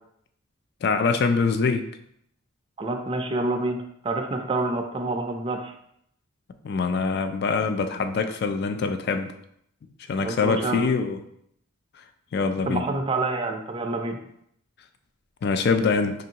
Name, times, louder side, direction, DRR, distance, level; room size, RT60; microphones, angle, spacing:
voice 1, 0.8-1.8 6.6-9.3 10.1-11.2 12.3-12.8 15.4-16.1, left 4 dB, 50° left, 8 dB, 0.3 m, -24 dB
voice 2, 2.8-5.7 10.2-10.8 12.7-14.2, right 2 dB, 25° right, 4 dB, 0.4 m, -27 dB
5.3 x 2.6 x 2.8 m, 0.73 s
head